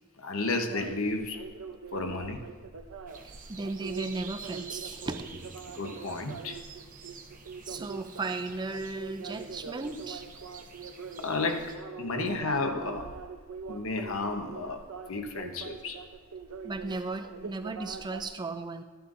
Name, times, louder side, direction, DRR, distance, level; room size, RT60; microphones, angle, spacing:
voice 1, 0.2-1.4 1.9-2.4 5.7-6.6 9.8-10.0 11.2-13.1 13.7-16.0, left 3 dB, 75° left, 5 dB, 1.0 m, -32 dB
sound 1, 0.7-18.3, right 5 dB, 85° right, 0.6 m, -43 dB
sound 2, 3.1-11.7, right 5 dB, 40° right, 0.8 m, -48 dB
voice 2, 3.2-5.3 7.6-10.6 16.6-18.8, right 3 dB, 20° right, 9 dB, 0.4 m, -36 dB
12.0 x 10.5 x 2.6 m, 1.4 s
head